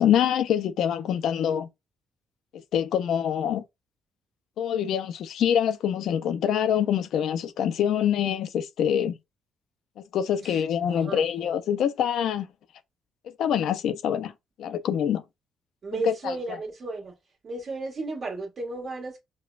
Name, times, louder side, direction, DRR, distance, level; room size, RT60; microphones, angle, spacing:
voice 1, 0.0-1.7 2.7-3.6 4.6-9.2 10.1-12.5 13.4-14.3 14.6-15.2 16.1-16.3, left 9 dB, 75° left, 0.4 m, -25 dB
voice 2, 10.4-11.6 15.8-17.2 17.4-19.2, right 3 dB, 50° right, 1.4 m, -34 dB
5.1 x 2.1 x 2.4 m
cardioid pair, 90°, 0 cm